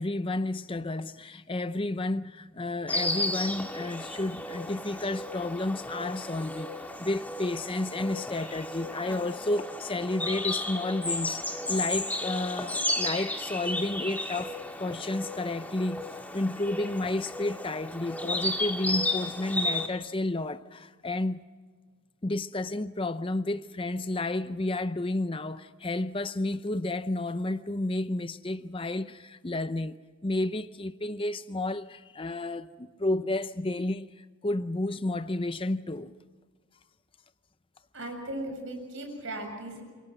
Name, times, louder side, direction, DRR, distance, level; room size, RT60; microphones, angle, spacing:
voice 1, 0.0-6.7 7.0-16.1 16.3-21.4 22.2-30.0 30.2-36.1, left 2 dB, 25° left, 0.6 m, -31 dB
Insect, 2.9-19.9, left 2 dB, 10° left, 1.9 m, -33 dB
voice 2, 37.9-39.8, right 1 dB, 60° right, 7.1 m, -37 dB
27.0 x 23.0 x 6.1 m
head